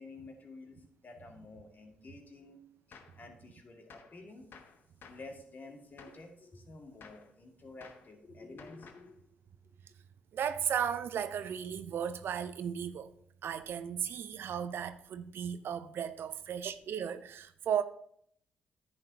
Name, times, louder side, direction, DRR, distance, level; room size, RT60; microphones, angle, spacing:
voice 1, 0.0-2.6 2.9-4.5 5.1-9.2 9.6-9.7, left 3 dB, 45° left, 2.0 m, -51 dB
Gunshot gunfire, 2.9-3.2 3.9-4.2 4.5-5.3 6.0-6.3 7.0-7.3 7.8-8.1 8.6-9.1, left 5 dB, 60° left, 1.0 m, -54 dB
voice 2, 10.3-13.1 13.4-17.8, right 8 dB, 65° right, 0.6 m, -35 dB
10.5 x 8.6 x 2.8 m
hypercardioid pair, 45°, 4 cm